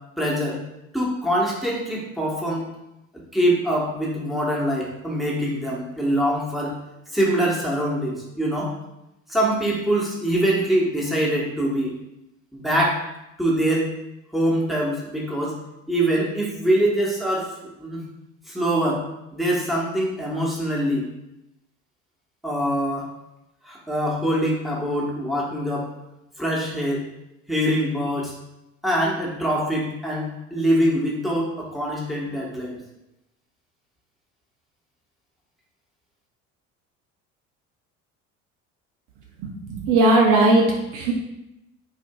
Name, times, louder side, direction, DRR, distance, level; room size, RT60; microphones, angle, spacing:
voice 1, 0.2-0.6 0.9-2.6 3.3-6.8 7.1-8.7 9.3-11.9 12.5-13.0 13.4-13.9 14.3-15.6 15.9-17.5 17.8-18.0 18.5-19.0 19.3-21.1 22.4-23.1 23.6-25.9 26.4-27.0 27.5-28.3 28.8-32.8, right 1 dB, ahead, -4 dB, 1.1 m, -24 dB
voice 2, 39.4-41.1, right 2 dB, 55° right, 0 dB, 0.7 m, -18 dB
4.5 x 2.6 x 2.2 m, 0.89 s
hypercardioid pair, 65°, 37 cm